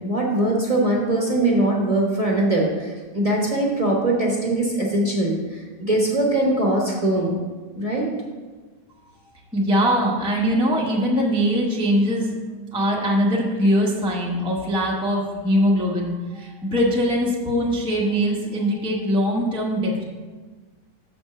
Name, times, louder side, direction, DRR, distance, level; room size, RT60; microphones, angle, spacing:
voice 1, 0.0-7.3 7.7-8.1, right 1 dB, 25° right, -3 dB, 1.0 m, -21 dB
voice 2, 9.5-12.3 12.7-20.0, equal, 5° right, -4 dB, 0.7 m, -22 dB
6.5 x 4.4 x 6.4 m, 1.3 s
omnidirectional pair, 1.8 m